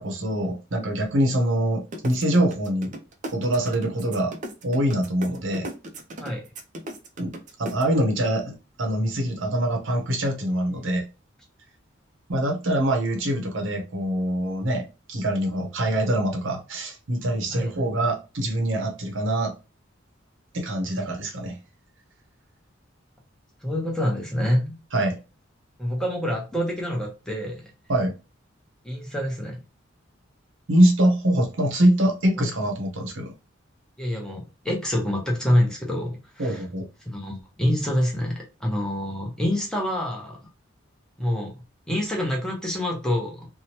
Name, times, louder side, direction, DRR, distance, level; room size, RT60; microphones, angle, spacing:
voice 1, 0.0-2.9 3.3-4.3 4.6-5.7 7.2-7.3 7.6-11.1 12.3-14.8 15.1-19.5 20.5-21.6 24.9-25.2 27.9-28.1 30.7-33.3 36.4-36.9, right 1 dB, 65° right, 0.8 m, -24 dB
sound 1, 1.9-7.8, right 1 dB, 40° right, 0.5 m, -36 dB
voice 2, 23.6-24.8 25.8-27.6 28.8-29.6 32.4-32.5 34.0-36.6 37.1-40.5 41.2-41.6 41.9-43.5, left 1 dB, 5° left, 0.7 m, -26 dB
3.0 x 2.1 x 2.8 m
head